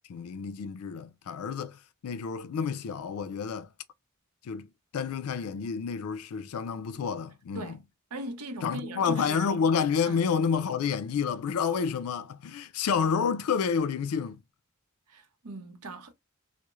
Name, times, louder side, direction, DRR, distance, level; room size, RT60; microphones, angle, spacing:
voice 1, 0.1-3.7 4.4-7.8 8.6-14.4, left 6 dB, 80° left, 0.4 m, -29 dB
voice 2, 8.1-9.5 10.0-10.2 15.1-16.1, right 1 dB, 90° right, 0.7 m, -39 dB
3.0 x 2.0 x 2.3 m
head